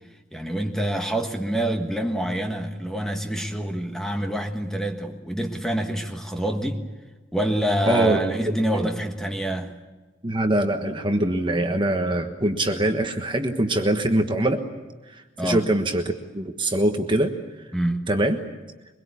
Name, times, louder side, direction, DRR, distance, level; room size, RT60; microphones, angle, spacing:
voice 1, 0.3-6.8 7.3-9.8 15.4-15.7 17.7-18.1, right 1 dB, 5° left, 1.5 m, -26 dB
voice 2, 7.9-8.9 10.2-14.6 15.1-17.3 18.1-18.4, right 1 dB, 25° right, 1.3 m, -23 dB
23.5 x 22.0 x 8.4 m
head